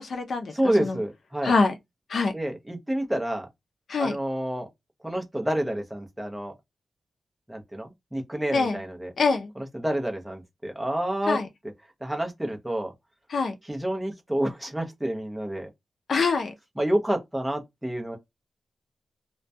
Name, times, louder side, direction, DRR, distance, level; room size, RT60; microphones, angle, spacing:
voice 1, 0.0-0.5 0.8-1.0 1.4-1.7 2.1-2.3 3.9-4.2 8.5-8.8 9.2-9.5 11.3-11.5 13.3-13.5 16.1-16.5, left 4 dB, 55° left, 0.4 m, -24 dB
voice 2, 0.5-1.5 2.3-3.5 4.0-4.7 5.0-6.5 7.5-9.1 9.6-11.4 12.0-12.9 13.7-15.7 16.8-18.2, right 1 dB, 5° right, 0.6 m, -28 dB
2.2 x 2.1 x 2.6 m
wide cardioid pair, 170°, 0 cm